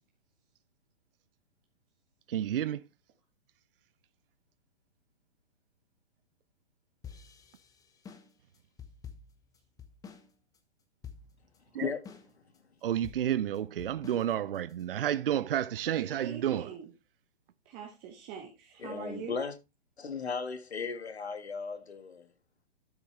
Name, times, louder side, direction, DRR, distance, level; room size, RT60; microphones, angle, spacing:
voice 1, 2.3-2.8 11.7-11.9 12.8-16.6, right 11 dB, 55° right, 0.5 m, -30 dB
sound 1, 7.0-10.3 10.5-10.6 11.0-11.6 12.0-12.6 13.0-14.8, left 7 dB, 10° left, 1.1 m, -49 dB
voice 2, 11.8-12.2 18.8-19.5 20.0-22.3, left 5 dB, 75° left, 1.7 m, -36 dB
voice 3, 16.0-16.9 17.6-19.4, right 7 dB, 25° right, 1.6 m, -43 dB
12.0 x 7.0 x 3.3 m
figure-of-eight pair, 120°, 33 cm